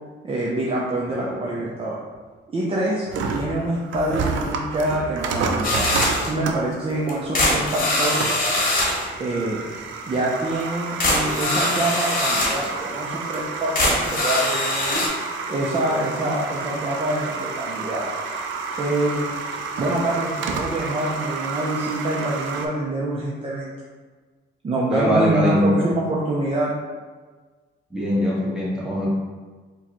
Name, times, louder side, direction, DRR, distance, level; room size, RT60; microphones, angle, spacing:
voice 1, 0.2-2.0 2.5-8.3 9.2-9.6 10.1-15.0 15.5-18.1 18.8-19.3 19.8-23.7 24.6-26.7, right 1 dB, 30° right, -4 dB, 0.5 m, -25 dB
sound 1, 3.1-22.7, right 4 dB, 75° right, 0.5 m, -30 dB
sound 2, 5.6-6.3 7.1-9.1 10.6-10.7 11.0-12.7 13.3-13.4 13.7-15.1, left 1 dB, 45° left, 1.0 m, -22 dB
voice 2, 24.9-25.8 27.9-29.1, left 1 dB, 5° right, -7 dB, 1.3 m, -21 dB
4.5 x 2.3 x 2.9 m, 1.4 s
cardioid pair, 90°, 20 cm